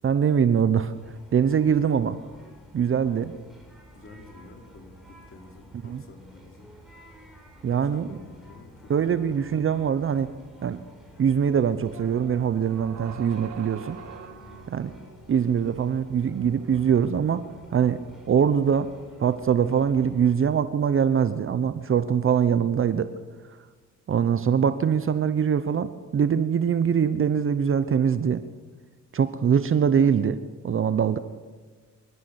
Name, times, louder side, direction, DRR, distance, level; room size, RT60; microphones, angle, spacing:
voice 1, 0.0-0.9 1.3-2.2 2.7-3.3 5.8-6.0 7.6-8.1 8.9-10.3 10.6-10.8 11.2-14.0 14.7-14.9 15.3-18.9 19.2-23.1 24.1-28.4 29.1-30.4 30.6-31.2, right 7 dB, 45° right, 12 dB, 0.9 m, -23 dB
sound 1, 0.9-20.4, right 1 dB, ahead, 7.8 m, -51 dB
voice 2, 3.9-6.7 7.7-9.5 14.3-14.7, left 3 dB, 45° left, 3 dB, 4.3 m, -49 dB
sound 2, 11.9-17.9, right 6 dB, 65° right, 2.0 m, -45 dB
26.0 x 14.5 x 8.2 m, 1.4 s
cardioid pair, 90°, 30 cm